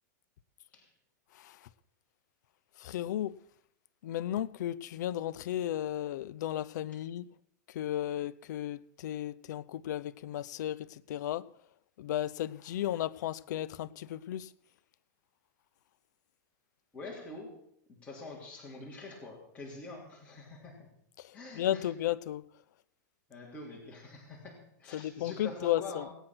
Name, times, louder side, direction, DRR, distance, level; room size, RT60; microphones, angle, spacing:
voice 1, 2.8-3.3 4.0-7.3 7.7-11.4 12.0-14.5 21.6-22.4 24.9-26.0, left 12 dB, 70° left, 0.5 m, -34 dB
voice 2, 16.9-17.6 17.9-20.9 21.3-21.9 23.3-26.1, left 2 dB, 15° left, 3.1 m, -45 dB
18.0 x 9.0 x 6.0 m
supercardioid pair, 150°, 10 cm